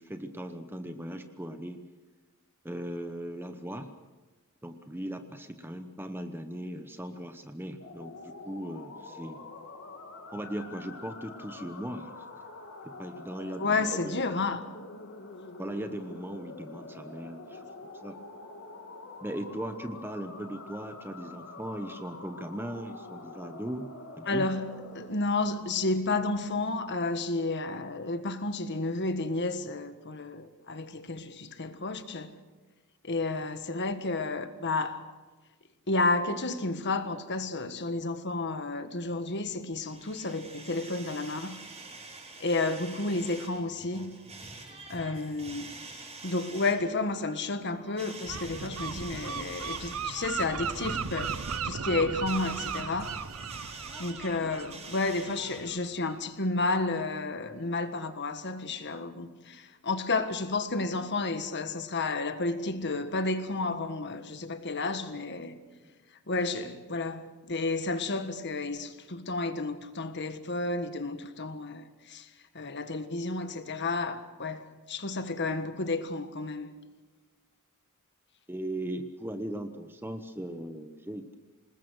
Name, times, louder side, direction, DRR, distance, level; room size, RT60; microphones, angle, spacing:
voice 1, 0.0-1.8 2.6-3.9 4.6-9.4 10.3-12.3 12.8-14.4 15.6-17.7 18.0-18.2 19.2-23.9 24.2-24.5 65.8-65.9 78.5-81.4, right 1 dB, 10° right, 1.0 m, -38 dB
sound 1, 7.8-25.1, left 3 dB, 70° left, 3.0 m, -46 dB
voice 2, 13.6-14.6 24.3-32.3 33.0-35.0 35.9-41.6 42.4-44.1 44.9-45.7 46.2-51.4 51.6-53.2 54.0-65.6 66.3-72.3 72.5-76.7, left 3 dB, 55° left, 1.6 m, -31 dB
sound 2, 39.7-55.7, right 3 dB, 30° right, 5.2 m, -46 dB
Gull seagull, 48.3-55.8, right 6 dB, 70° right, 0.7 m, -36 dB
27.0 x 20.5 x 6.5 m
head